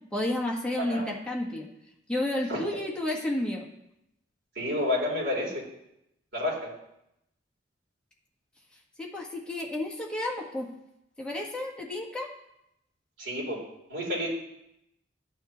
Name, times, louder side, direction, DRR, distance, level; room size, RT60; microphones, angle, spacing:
voice 1, 0.1-1.7 2.1-3.6 9.0-10.7 11.2-12.3, left 1 dB, 5° left, -3 dB, 1.4 m, -31 dB
voice 2, 4.6-5.6 6.3-6.6 13.2-13.6 13.9-14.3, left 1 dB, 70° right, -4 dB, 3.6 m, -29 dB
12.0 x 9.0 x 3.0 m, 0.82 s
head